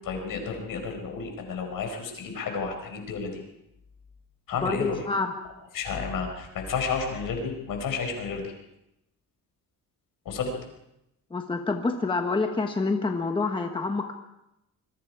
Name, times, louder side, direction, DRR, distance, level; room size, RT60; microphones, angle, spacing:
voice 1, 0.0-3.4 4.5-5.0 5.7-8.5 10.2-10.5, left 5 dB, 70° left, 3 dB, 5.0 m, -31 dB
voice 2, 4.6-5.3 11.3-14.1, left 3 dB, 15° left, 4 dB, 1.2 m, -27 dB
27.0 x 21.5 x 4.8 m, 0.86 s
cardioid pair, 180°, 35 cm